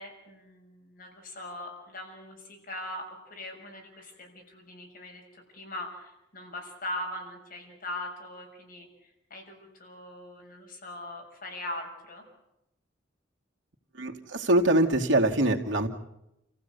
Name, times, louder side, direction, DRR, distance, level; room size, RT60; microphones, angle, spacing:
voice 1, 0.0-12.2, left 1 dB, 50° left, 1 dB, 6.4 m, -41 dB
voice 2, 13.9-15.9, right 1 dB, 90° right, 1 dB, 2.4 m, -23 dB
29.0 x 15.5 x 8.2 m, 0.87 s
head